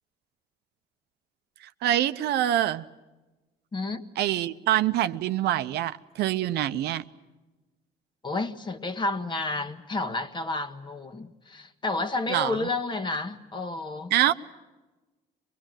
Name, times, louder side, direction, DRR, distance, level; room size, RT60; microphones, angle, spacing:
voice 1, 1.6-2.9 4.2-7.0 12.3-12.7 14.1-14.3, right 12 dB, 75° right, 0.8 m, -25 dB
voice 2, 3.7-4.0 8.2-14.1, left 2 dB, 25° left, 1.5 m, -31 dB
24.5 x 20.5 x 9.0 m
cardioid pair, 110°, 17 cm